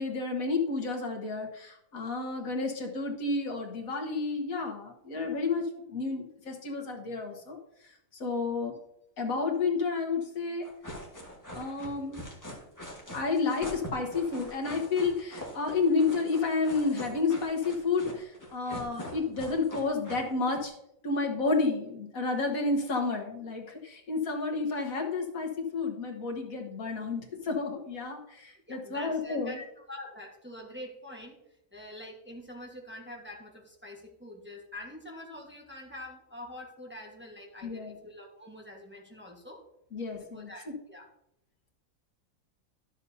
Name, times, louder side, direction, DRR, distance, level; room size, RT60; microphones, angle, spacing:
voice 1, 0.0-7.6 8.1-8.7 9.2-10.7 11.5-12.2 13.1-20.7 21.0-29.6 37.6-37.9 39.9-40.7, left 4 dB, 80° left, 1 dB, 1.8 m, -31 dB
sound 1, 10.6-20.6, equal, 15° left, 1.6 m, -43 dB
voice 2, 28.7-39.7 40.2-41.1, left 1 dB, 10° right, -1 dB, 1.3 m, -45 dB
12.0 x 7.1 x 2.8 m, 0.81 s
omnidirectional pair, 1.5 m